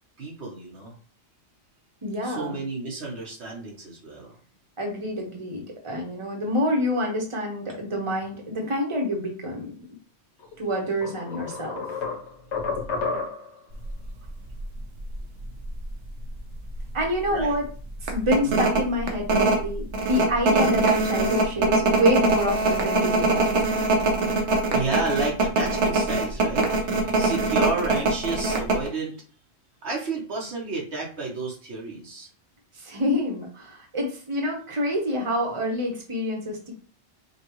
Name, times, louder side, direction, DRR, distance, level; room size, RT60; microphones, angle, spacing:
voice 1, 0.2-0.9 2.2-4.4 17.3-17.5 18.4-18.5 24.7-29.2 29.8-32.3, right 3 dB, 75° right, -2 dB, 1.4 m, -31 dB
voice 2, 2.0-2.6 4.8-9.7 10.6-11.8 16.9-17.7 18.0-23.6 32.7-36.7, equal, 30° right, 1 dB, 1.1 m, -27 dB
sound 1, 10.4-10.5 11.0-13.6, left 4 dB, 85° left, 1.3 m, -31 dB
sound 2, 13.8-14.0 14.6-14.7 15.0-15.9 16.3-16.4 16.7-17.0 17.4-17.5 18.1-28.9, right 3 dB, 90° right, 1.1 m, -22 dB
5.3 x 2.5 x 3.0 m, 0.41 s
omnidirectional pair, 1.1 m